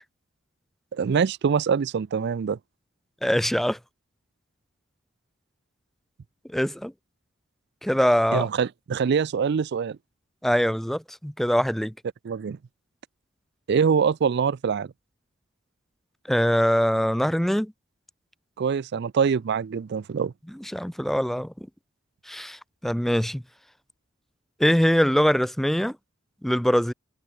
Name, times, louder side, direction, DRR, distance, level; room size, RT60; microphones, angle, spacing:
voice 1, 0.9-2.6 8.3-10.0 12.2-12.6 13.7-14.9 18.6-20.3, right 6 dB, 55° right, 0.4 m, -24 dB
voice 2, 3.2-3.8 6.5-6.9 7.8-8.5 10.4-11.9 16.3-17.7 20.7-21.5 22.3-23.4 24.6-25.9 26.4-26.9, equal, ahead, 0.5 m, -23 dB
head